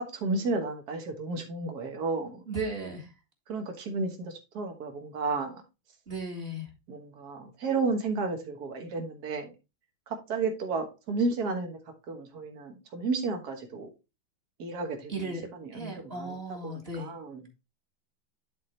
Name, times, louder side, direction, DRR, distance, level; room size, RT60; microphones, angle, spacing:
voice 1, 0.1-2.4 3.5-5.6 6.9-9.5 10.1-11.8 12.1-13.9 14.6-15.3 15.6-16.4 16.6-17.4, right 3 dB, 50° right, 4 dB, 1.8 m, -32 dB
voice 2, 2.5-3.1 6.1-6.7 15.1-15.4 15.7-17.1, right 2 dB, 30° right, 1 dB, 2.0 m, -35 dB
11.0 x 4.1 x 3.2 m, 0.27 s
omnidirectional pair, 2.2 m